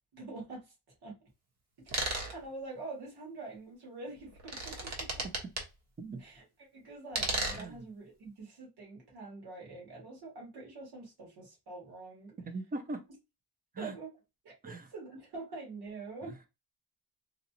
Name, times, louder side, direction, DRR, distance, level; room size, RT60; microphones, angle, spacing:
voice 1, 0.1-0.6 1.0-1.2 1.9-5.2 6.2-6.4 6.7-12.3 13.8-14.1 14.4-16.3, right 3 dB, 75° right, 2.2 m, -45 dB
sound 1, 1.9-2.3 4.2-5.6 7.1-7.7, right 2 dB, 45° right, 1.1 m, -34 dB
voice 2, 12.4-13.0 13.7-13.9 14.6-14.9 16.2-16.4, right 2 dB, 25° right, 0.6 m, -40 dB
4.0 x 2.5 x 2.8 m
wide cardioid pair, 170°, 38 cm